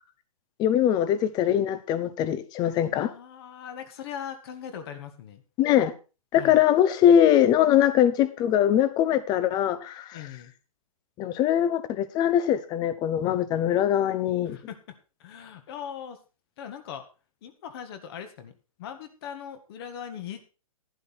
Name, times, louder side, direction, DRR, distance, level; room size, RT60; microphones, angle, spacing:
voice 1, 0.6-3.1 5.6-5.9 6.3-10.2 11.2-14.6, left 10 dB, 20° left, 0.9 m, -22 dB
voice 2, 3.0-5.4 6.3-6.6 10.1-10.5 14.4-16.2 16.6-17.1 17.4-20.5, left 8 dB, 45° left, 1.8 m, -40 dB
11.5 x 10.5 x 4.3 m
hypercardioid pair, 140°, 18 cm